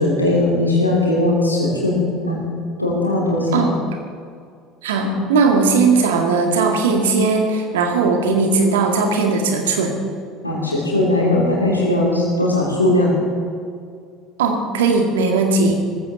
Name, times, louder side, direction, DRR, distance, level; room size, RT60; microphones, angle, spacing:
voice 1, 0.0-2.4 2.8-3.6 5.0-5.2 8.2-8.3 10.4-13.1, left 2 dB, 85° left, -3 dB, 3.3 m, -19 dB
voice 2, 4.8-9.9 14.4-15.8, right 4 dB, 65° right, 3 dB, 2.0 m, -18 dB
18.0 x 15.0 x 4.0 m, 2.2 s
figure-of-eight pair, 65°, 0 cm